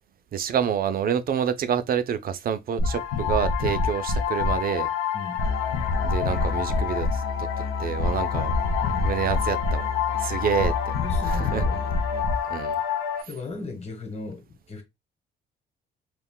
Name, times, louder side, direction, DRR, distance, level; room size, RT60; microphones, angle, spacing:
voice 1, 0.3-4.9 6.0-7.5 7.8-8.5 9.0-9.9 10.2-10.9 11.2-11.6 12.5-12.8, right 8 dB, 50° right, 0.4 m, -27 dB
sound 1, 2.8-13.2, left 5 dB, 90° left, 0.5 m, -26 dB
Musical instrument, 5.4-12.3, left 5 dB, 50° left, 0.7 m, -33 dB
voice 2, 11.0-11.9 13.3-14.8, left 3 dB, 35° left, 1.1 m, -36 dB
2.4 x 2.2 x 3.7 m
cardioid pair, 90°, 20 cm